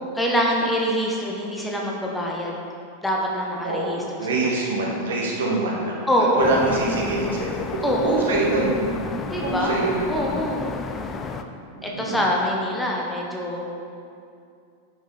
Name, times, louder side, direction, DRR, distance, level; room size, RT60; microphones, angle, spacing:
voice 1, 0.1-2.5 3.0-4.5 6.1-6.5 7.8-8.3 9.3-9.8 10.1-10.7 11.8-13.6, equal, 5° left, -2 dB, 1.3 m, -24 dB
voice 2, 3.6-6.0 6.3-8.7 9.4-10.0 11.7-12.2, right 2 dB, 65° right, -3 dB, 1.8 m, -25 dB
sound 1, 6.4-11.4, left 5 dB, 25° left, 0.5 m, -32 dB
10.5 x 6.1 x 4.2 m, 2.4 s
figure-of-eight pair, 90°, 0 cm